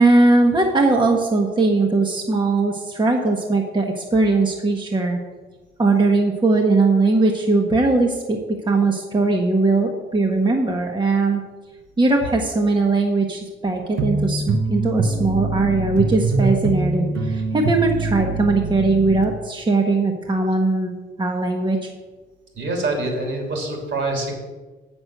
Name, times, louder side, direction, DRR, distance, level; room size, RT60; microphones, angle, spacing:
voice 1, 0.0-5.2 5.8-8.4 8.7-11.4 12.0-21.9, right 3 dB, 25° right, 1 dB, 1.2 m, -19 dB
sound 1, 14.0-19.3, right 3 dB, 85° right, 1.1 m, -23 dB
voice 2, 22.5-24.3, right 2 dB, 65° right, 1 dB, 3.2 m, -25 dB
7.8 x 6.3 x 6.7 m, 1.3 s
cardioid pair, 90°, 20 cm